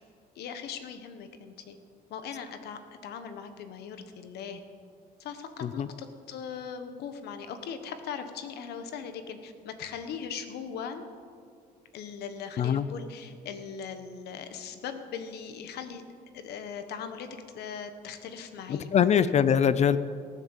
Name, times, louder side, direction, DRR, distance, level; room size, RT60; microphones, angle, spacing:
voice 1, 0.3-1.8 2.1-4.6 5.2-11.1 11.9-16.0 16.3-17.3 17.5-19.3, left 7 dB, 75° left, 8 dB, 1.4 m, -39 dB
voice 2, 18.7-20.0, left 8 dB, 40° left, 14 dB, 0.5 m, -23 dB
18.0 x 7.3 x 7.4 m, 2.2 s
cardioid pair, 110°, 17 cm